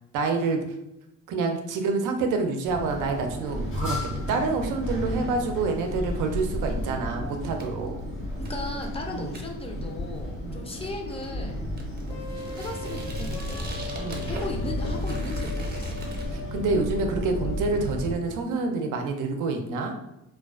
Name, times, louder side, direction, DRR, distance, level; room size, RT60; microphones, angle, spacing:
voice 1, 0.1-0.6 1.3-8.0 9.1-9.4 10.4-10.6 13.9-14.3 16.3-19.9, right 3 dB, 90° right, 4 dB, 0.5 m, -27 dB
sound 1, 2.6-18.1, equal, 70° left, 1.2 m, -33 dB
sound 2, 6.3-16.3, right 1 dB, 35° right, 0.6 m, -41 dB
voice 2, 8.4-11.6 12.6-13.9 14.2-16.0, left 2 dB, 20° left, 2 dB, 0.4 m, -37 dB
sound 3, 12.1-18.2, left 5 dB, 90° left, 0.5 m, -40 dB
2.3 x 2.3 x 2.3 m, 0.88 s
cardioid pair, 90°, 30 cm